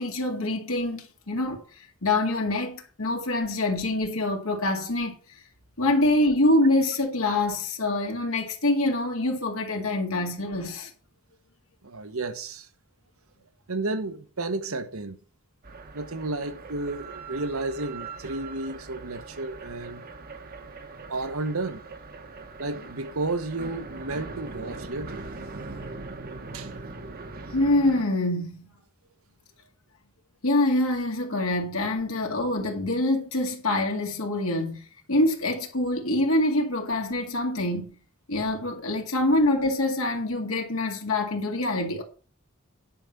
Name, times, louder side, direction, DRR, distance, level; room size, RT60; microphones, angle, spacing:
voice 1, 0.0-5.1 5.8-10.9 27.5-28.7 30.4-34.8 35.1-37.9 38.3-42.0, left 2 dB, 70° left, 2.1 m, -25 dB
voice 2, 11.8-12.7 13.7-15.2 15.9-20.0 21.1-21.9 22.6-25.3 26.5-26.7, right 2 dB, 70° right, 1.2 m, -32 dB
sound 1, 15.6-28.0, right 3 dB, 45° right, 1.1 m, -41 dB
10.0 x 5.9 x 5.4 m
head